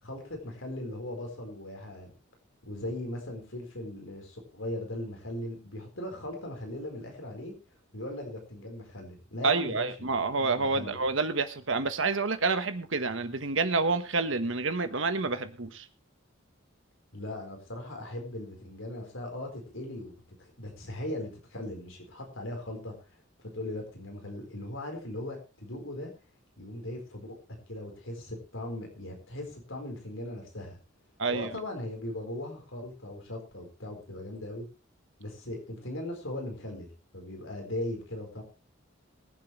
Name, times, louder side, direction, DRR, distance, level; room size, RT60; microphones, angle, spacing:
voice 1, 0.0-2.1 2.7-7.5 7.9-10.1 10.4-11.0 17.1-22.9 23.5-26.1 26.6-27.4 27.7-30.8 31.3-34.6 35.2-38.4, left 1 dB, 70° left, 2 dB, 4.4 m, -39 dB
voice 2, 9.4-15.9 31.2-31.5, right 4 dB, 65° right, 9 dB, 1.4 m, -28 dB
23.0 x 7.8 x 3.2 m, 0.31 s
head